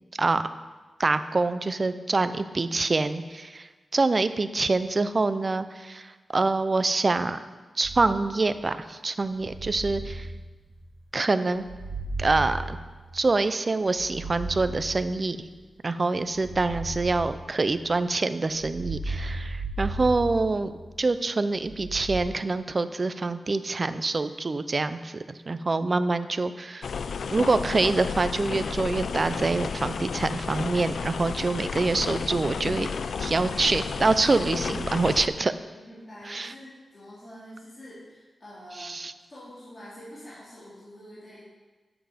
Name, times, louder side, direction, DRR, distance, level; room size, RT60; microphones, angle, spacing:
voice 1, 1.0-7.4 7.8-10.3 11.1-11.6 12.2-12.8 13.1-15.4 15.8-20.7 21.0-26.9 27.3-32.9 33.2-35.5 36.3-36.5 38.8-39.1, right 3 dB, 40° right, 12 dB, 0.4 m, -25 dB
sound 1, 7.8-8.5 9.3-11.0 11.6-13.4 13.9-15.5 16.3-17.9 18.5-21.0 21.6-22.2, right 2 dB, 85° right, 1.3 m, -36 dB
sound 2, 26.8-35.3, left 5 dB, 75° left, 0.3 m, -32 dB
voice 2, 32.7-33.1 35.7-39.0 39.3-41.4, equal, 30° left, -10 dB, 2.7 m, -46 dB
7.9 x 6.9 x 5.0 m, 1.3 s
wide cardioid pair, 100°, 0 cm